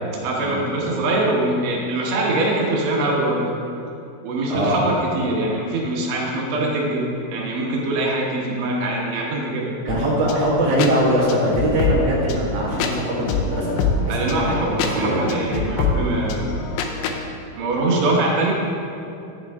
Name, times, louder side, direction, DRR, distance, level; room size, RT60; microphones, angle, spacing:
voice 1, 0.2-3.4 4.2-9.7 14.1-16.5 17.6-18.5, right 2 dB, 85° right, -3 dB, 1.5 m, -23 dB
voice 2, 4.5-4.8 9.9-15.7, right 1 dB, 55° right, -6 dB, 2.7 m, -22 dB
sound 1, 9.9-17.2, left 4 dB, 85° left, 2.8 m, -26 dB
10.5 x 7.5 x 3.5 m, 2.7 s
omnidirectional pair, 4.8 m